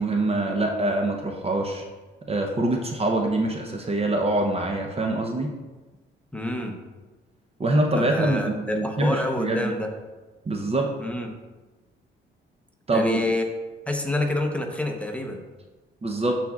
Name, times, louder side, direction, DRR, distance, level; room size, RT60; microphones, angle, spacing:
voice 1, 0.0-1.8 2.3-5.5 7.6-9.7 10.5-10.9 12.9-13.2 16.0-16.4, right 2 dB, 30° right, 2 dB, 0.7 m, -24 dB
voice 2, 6.3-6.7 7.9-9.9 11.0-11.3 12.9-13.5 13.9-15.4, left 1 dB, 5° left, 2 dB, 0.8 m, -28 dB
12.0 x 4.2 x 2.4 m, 1.2 s
cardioid pair, 90°, 20 cm